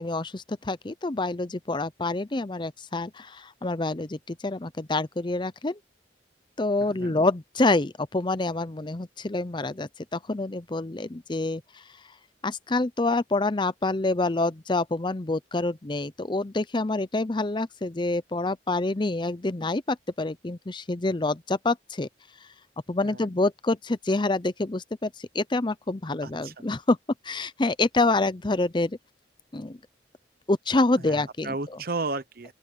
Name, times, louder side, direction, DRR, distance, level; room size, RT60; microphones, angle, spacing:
voice 1, 0.0-5.8 6.6-11.8 12.4-22.1 22.9-27.0 27.2-29.0 29.5-29.8 30.5-31.6, left 2 dB, 25° left, 0.6 m, -27 dB
voice 2, 6.8-7.2 23.0-23.3 26.2-26.5 31.0-32.5, right 3 dB, 55° right, 0.9 m, -34 dB
open air
head